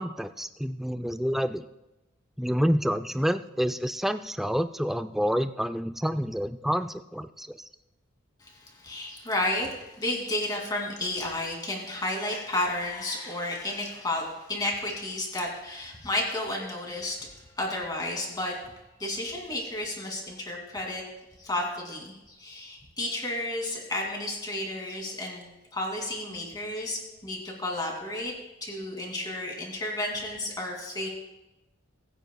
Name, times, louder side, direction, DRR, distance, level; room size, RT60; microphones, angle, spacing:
voice 1, 0.0-1.6 2.4-7.7, equal, ahead, 10 dB, 0.3 m, -28 dB
voice 2, 8.4-17.2 17.6-18.6 19.0-21.0 21.4-28.3 28.6-31.1, left 1 dB, 20° left, 0 dB, 2.5 m, -32 dB
21.0 x 9.1 x 2.3 m, 0.99 s
head